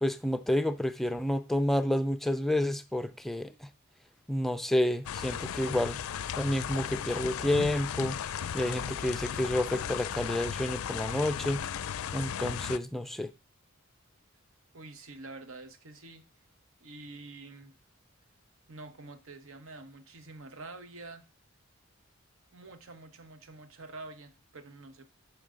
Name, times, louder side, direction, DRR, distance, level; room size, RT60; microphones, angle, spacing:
voice 1, 0.0-3.7 4.3-6.0 6.3-8.2 8.5-11.6 12.1-13.3, left 1 dB, ahead, 0.4 m, -29 dB
sound 1, 5.1-12.8, left 8 dB, 80° left, 0.4 m, -36 dB
voice 2, 14.7-16.2 16.8-17.8 18.7-21.2 22.5-25.1, right 3 dB, 70° right, 1.1 m, -47 dB
9.0 x 6.1 x 3.8 m
head